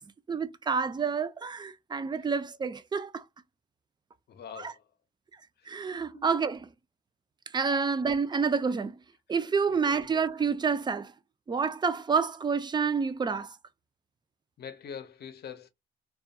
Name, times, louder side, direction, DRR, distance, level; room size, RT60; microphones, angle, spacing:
voice 1, 0.3-3.2 4.6-4.7 5.7-6.7 7.5-9.0 9.3-11.1 11.5-13.5, right 5 dB, 20° right, 0.4 m, -28 dB
voice 2, 4.3-4.8 5.6-5.7 6.1-6.3 9.7-10.1 14.6-15.7, left 7 dB, 55° left, 0.7 m, -44 dB
2.6 x 2.3 x 2.2 m
cardioid pair, 90°, 20 cm